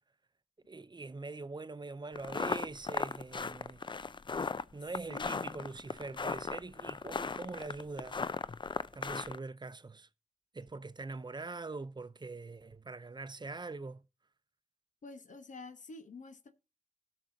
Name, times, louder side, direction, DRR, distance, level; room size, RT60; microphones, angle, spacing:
voice 1, 0.7-3.8 4.7-8.2 8.9-10.1 10.5-14.0, right 3 dB, 35° right, 0.5 m, -43 dB
sound 1, 2.2-9.4, left 4 dB, 40° left, 0.4 m, -37 dB
voice 2, 5.1-5.7 15.0-16.5, left 3 dB, 85° left, 0.9 m, -48 dB
17.5 x 6.2 x 2.7 m
cardioid pair, 40°, 13 cm